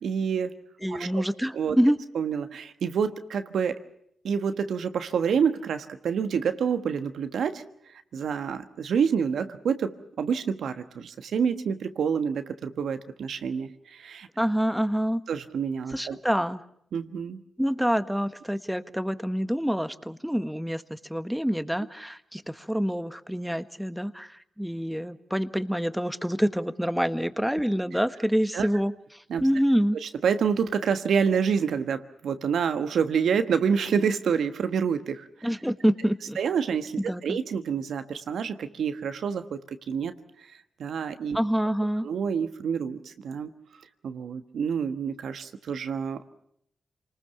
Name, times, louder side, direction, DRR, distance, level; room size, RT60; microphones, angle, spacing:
voice 1, 0.0-0.5 0.9-1.1 1.5-1.8 2.1-3.8 4.2-7.6 8.1-14.3 15.3-16.2 16.9-17.4 28.5-28.7 29.3-29.4 30.0-35.3 36.4-40.1 40.8-41.4 42.0-43.5 44.0-46.2, right 6 dB, 75° right, 10 dB, 1.3 m, -27 dB
voice 2, 0.8-2.0 14.4-15.2 15.9-16.6 17.6-30.0 35.4-36.4 37.1-37.4 41.3-42.1, equal, 5° right, 12 dB, 1.4 m, -27 dB
27.5 x 20.0 x 7.0 m, 0.70 s
supercardioid pair, 45°, 0 cm